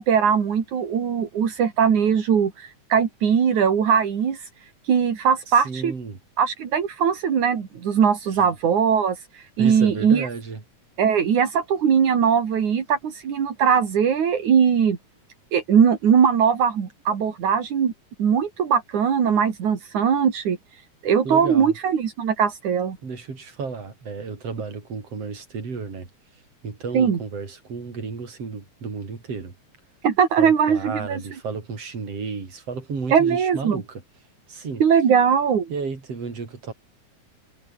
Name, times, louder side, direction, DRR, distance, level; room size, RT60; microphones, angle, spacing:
voice 1, 0.0-4.4 4.9-5.9 6.4-10.3 11.0-15.0 15.5-17.9 18.2-20.6 21.0-23.0 26.9-27.2 30.0-31.2 33.1-33.8 34.8-35.7, right 7 dB, 80° right, 4.2 m, -20 dB
voice 2, 5.5-6.2 8.4-8.5 9.6-10.6 21.2-21.7 23.0-26.1 26.6-29.5 30.4-34.0 34.5-34.8 35.7-36.7, right 4 dB, 55° right, 5.6 m, -32 dB
omnidirectional pair, 3.4 m